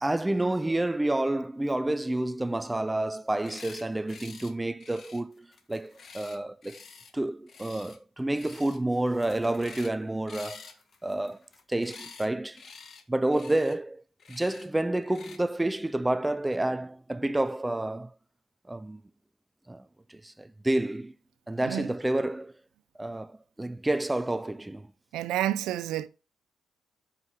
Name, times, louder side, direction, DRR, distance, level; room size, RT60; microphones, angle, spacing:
voice 1, 0.0-6.8 7.1-10.7 11.0-11.4 11.7-12.6 13.1-14.0 14.3-18.1 18.7-19.0 19.7-21.1 21.5-22.5 23.0-24.9, right 1 dB, 10° right, 0.4 m, -29 dB
sound 1, 3.3-4.5 4.8-7.1 7.5-8.0 8.3-8.8 9.1-10.0 10.3-12.3 12.5-13.0 13.3-13.8 14.2-14.7 15.1-15.4, left 5 dB, 50° left, 1.2 m, -48 dB
voice 2, 25.1-26.1, right 13 dB, 90° right, 0.5 m, -29 dB
7.3 x 5.6 x 3.7 m
cardioid pair, 90°, 0 cm